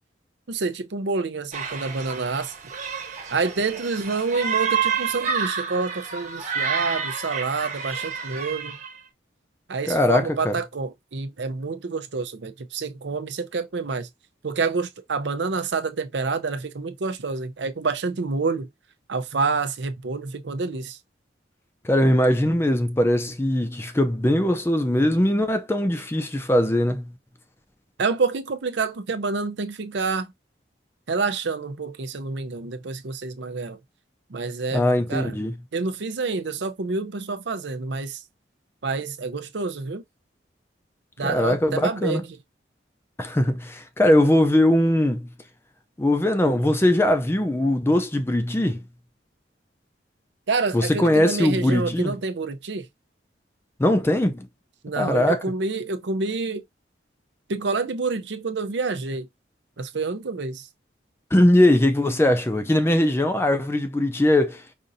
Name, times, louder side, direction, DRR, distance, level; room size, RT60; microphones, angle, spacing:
voice 1, 0.5-2.5 3.3-8.8 9.7-14.1 14.4-18.7 19.1-21.0 28.0-30.3 31.1-33.8 34.3-35.4 35.7-38.2 38.8-40.0 41.2-42.4 50.5-52.9 54.8-56.6 57.5-59.3 59.8-60.7, right 4 dB, 75° right, 0.6 m, -28 dB
sound 1, 1.5-9.0, right 6 dB, 40° right, 1.1 m, -29 dB
voice 2, 9.9-10.6 21.8-27.1 34.7-35.5 41.2-42.2 43.2-45.3 46.0-48.8 50.7-52.1 53.8-54.5 55.0-55.5 61.3-64.6, left 1 dB, 15° left, 0.4 m, -20 dB
5.2 x 2.5 x 2.6 m
head